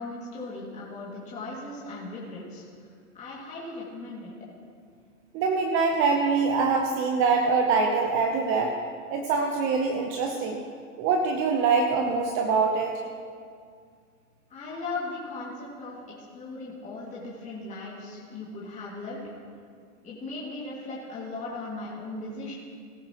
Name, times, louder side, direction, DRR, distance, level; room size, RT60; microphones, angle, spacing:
voice 1, 0.0-2.6 3.1-4.3 14.5-16.0 16.3-19.2 20.0-22.5, left 3 dB, 15° left, -7 dB, 2.3 m, -37 dB
voice 2, 5.3-8.7 9.1-10.6 11.0-13.0, right 4 dB, 25° right, 3 dB, 0.8 m, -24 dB
18.0 x 11.0 x 3.0 m, 2.2 s
hypercardioid pair, 130°, 45 cm